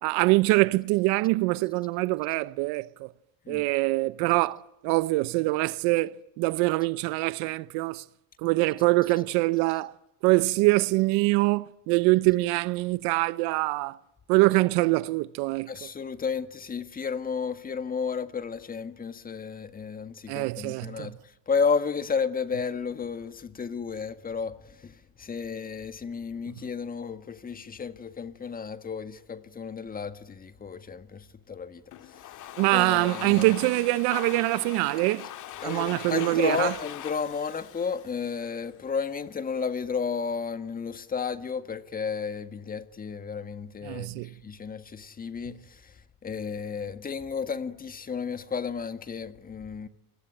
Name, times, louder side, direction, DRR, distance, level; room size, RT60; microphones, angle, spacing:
voice 1, 0.0-3.1 3.5-8.0 8.4-9.9 10.2-14.0 14.3-15.9 20.3-21.1 32.6-35.3 35.6-36.7 43.8-44.3, right 22 dB, 70° right, 0.9 m, -24 dB
voice 2, 15.7-21.2 21.5-32.3 32.7-33.5 35.6-49.9, left 5 dB, 20° left, 1.7 m, -32 dB
Domestic sounds home sounds, 31.9-38.8, left 12 dB, 50° left, 2.2 m, -41 dB
28.5 x 23.0 x 9.0 m
cardioid pair, 135°, 40 cm